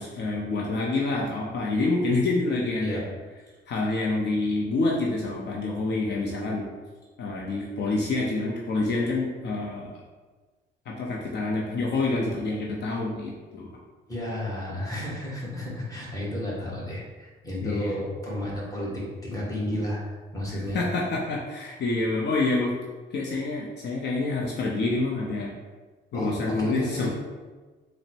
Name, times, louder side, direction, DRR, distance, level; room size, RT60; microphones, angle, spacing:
voice 1, 0.0-3.0 3.7-6.7 7.2-10.0 10.9-13.8 17.6-17.9 20.5-22.7 23.1-25.5 26.1-27.1, left 2 dB, 60° left, -2 dB, 0.6 m, -27 dB
voice 2, 14.1-20.8 26.1-27.1, left 1 dB, 15° left, -5 dB, 1.4 m, -32 dB
3.9 x 2.1 x 4.3 m, 1.3 s
cardioid pair, 90°, 20 cm